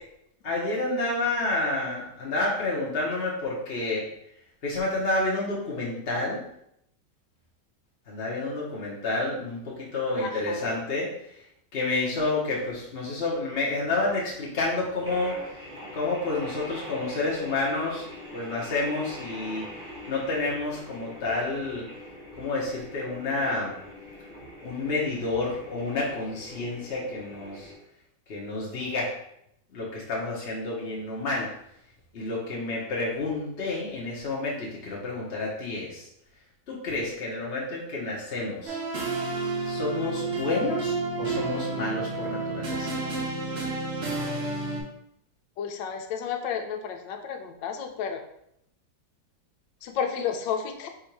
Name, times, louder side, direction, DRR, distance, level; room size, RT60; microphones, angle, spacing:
voice 1, 0.4-4.1 4.6-6.4 8.1-11.3 11.7-15.4 15.9-18.1 18.3-19.6 20.1-21.8 22.4-23.7 24.6-27.7 28.3-29.1 29.7-31.5 32.1-36.1 36.7-38.8 39.6-42.9, left 2 dB, 45° left, -4 dB, 0.8 m, -29 dB
voice 2, 10.2-10.6 45.6-48.2 49.8-50.9, left 7 dB, 90° left, 6 dB, 1.3 m, -32 dB
sound 1, 15.0-27.8, left 1 dB, 5° right, 1.0 m, -43 dB
sound 2, 38.7-44.8, right 3 dB, 55° right, 0.8 m, -30 dB
3.7 x 2.7 x 4.5 m, 0.76 s
omnidirectional pair, 1.9 m